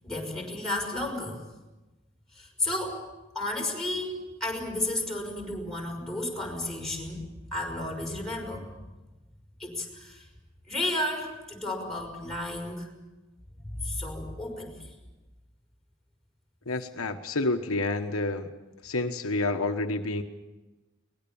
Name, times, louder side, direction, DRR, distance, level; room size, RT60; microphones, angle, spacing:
voice 1, 0.0-1.4 2.3-3.0 3.3-8.7 9.6-10.3 10.7-12.9 13.6-14.9, left 1 dB, ahead, 0 dB, 5.8 m, -33 dB
voice 2, 16.7-18.5 18.8-20.2, left 2 dB, 75° left, 5 dB, 1.3 m, -29 dB
23.0 x 20.0 x 7.1 m, 1.1 s
head